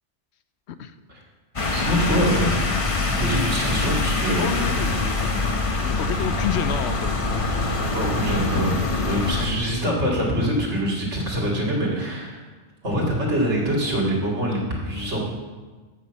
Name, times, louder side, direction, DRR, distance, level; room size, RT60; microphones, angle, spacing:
sound 1, 1.6-9.5, left 3 dB, 30° left, 0.8 m, -24 dB
voice 1, 1.7-2.7 3.2-4.5 7.9-8.8 9.0-12.4 12.8-15.2, equal, 80° right, -3 dB, 2.6 m, -24 dB
voice 2, 4.4-7.2, left 8 dB, 75° left, 11 dB, 0.9 m, -30 dB
8.1 x 6.2 x 7.4 m, 1.3 s
omnidirectional pair, 1.2 m